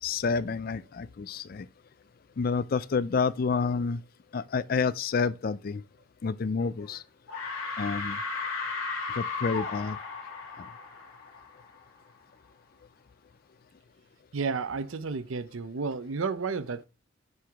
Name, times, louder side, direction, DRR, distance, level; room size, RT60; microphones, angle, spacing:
voice 1, 0.0-1.7 2.4-4.0 4.3-5.8 6.2-7.0 7.8-8.2 9.1-10.0 10.6-10.7, left 5 dB, 45° left, 0.4 m, -29 dB
sound 1, 6.6-7.0 7.3-11.9, left 4 dB, 90° left, 2.6 m, -35 dB
voice 2, 14.3-16.9, right 4 dB, 70° right, 0.6 m, -32 dB
9.5 x 4.7 x 3.4 m
head